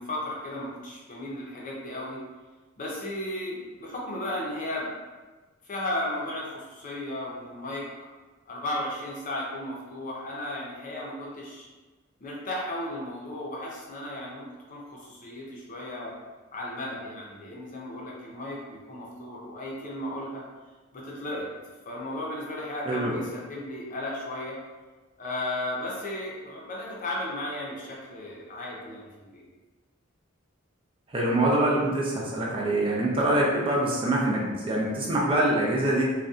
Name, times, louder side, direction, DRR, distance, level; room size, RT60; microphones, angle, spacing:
voice 1, 0.0-2.2 2.8-4.9 5.7-7.8 8.5-11.7 12.2-16.1 16.5-20.4 20.9-21.5 21.9-24.6 25.2-29.4, left 1 dB, 40° left, -4 dB, 0.5 m, -35 dB
voice 2, 22.8-23.2 31.1-36.1, right 1 dB, 25° right, -4 dB, 0.4 m, -24 dB
2.6 x 2.2 x 2.3 m, 1.3 s
head